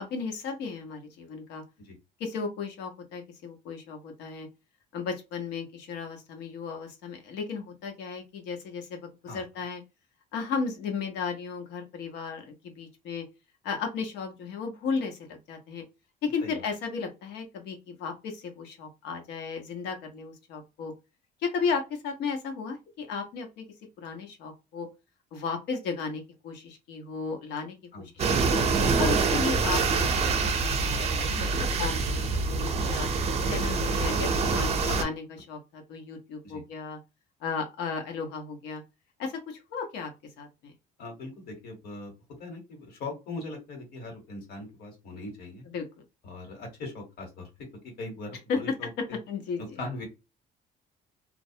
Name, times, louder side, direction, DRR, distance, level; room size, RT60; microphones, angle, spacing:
voice 1, 0.0-1.6 2.2-4.5 4.9-9.8 10.3-13.2 13.6-15.8 16.2-20.9 21.4-23.6 24.0-24.9 25.3-27.7 28.1-28.6 29.0-30.1 30.4-33.1 33.5-37.0 37.4-38.8 39.2-40.1 40.4-40.7 45.7-45.8 48.5-48.6 49.3-49.6, left 5 dB, 85° left, 4 dB, 0.9 m, -34 dB
sound 1, 28.2-35.0, right 4 dB, 40° right, 0.6 m, -26 dB
voice 2, 41.0-42.1 42.4-45.6 46.2-49.2 49.6-50.1, left 2 dB, 65° left, 2 dB, 1.2 m, -40 dB
2.2 x 2.0 x 2.7 m, 0.26 s
cardioid pair, 110°, 17 cm